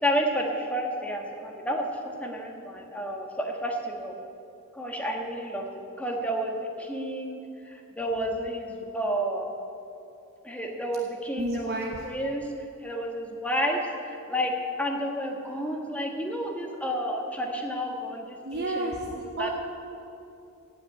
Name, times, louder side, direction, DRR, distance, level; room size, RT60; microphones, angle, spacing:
voice 1, 0.0-4.1 4.7-5.6 6.0-7.4 7.6-9.5 10.4-11.7 12.0-12.5 12.8-19.5, equal, 5° left, 1 dB, 1.3 m, -31 dB
voice 2, 11.4-12.1 18.4-19.5, right 1 dB, 45° right, 1 dB, 0.9 m, -31 dB
16.5 x 5.9 x 9.2 m, 2.7 s
head